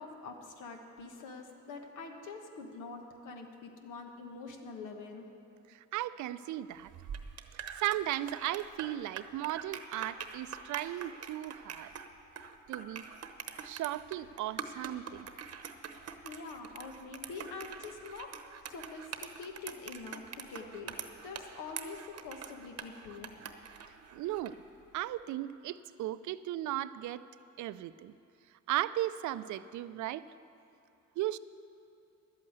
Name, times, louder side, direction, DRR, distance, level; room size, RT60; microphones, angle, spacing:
voice 1, 0.0-5.3 16.2-18.3 18.7-23.3, left 4 dB, 90° left, 4 dB, 1.4 m, -45 dB
voice 2, 5.7-6.9 7.5-11.9 12.7-13.0 13.6-15.3 24.1-24.6 24.9-27.2 27.6-28.1 28.7-30.2 31.2-31.4, right 14 dB, 75° right, 15 dB, 0.5 m, -36 dB
sound 1, 6.8-24.6, right 7 dB, 55° right, 0.9 m, -44 dB
11.5 x 8.6 x 8.1 m, 2.7 s
cardioid pair, 90°, 30 cm